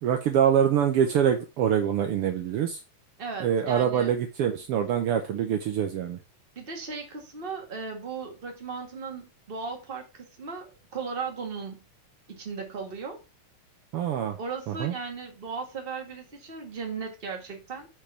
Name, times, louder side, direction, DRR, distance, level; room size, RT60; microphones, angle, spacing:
voice 1, 0.0-2.8 3.4-6.2 13.9-14.4 14.7-14.9, right 9 dB, 85° right, 1.2 m, -25 dB
voice 2, 3.2-4.2 6.5-11.8 12.3-13.2 14.4-17.9, right 5 dB, 25° right, 1.4 m, -37 dB
6.9 x 4.6 x 5.8 m
omnidirectional pair, 3.7 m